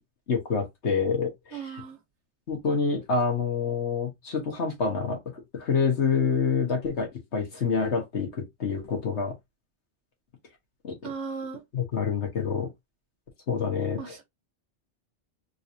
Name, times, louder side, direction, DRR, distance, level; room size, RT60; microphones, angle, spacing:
voice 1, 0.3-1.8 2.5-9.3 10.8-11.0 11.7-12.7 13.5-14.2, left 5 dB, 75° left, 1.6 m, -27 dB
voice 2, 1.5-2.0 11.0-11.6 14.0-14.2, right 5 dB, 85° right, 1.2 m, -36 dB
3.9 x 2.9 x 2.6 m
omnidirectional pair, 1.2 m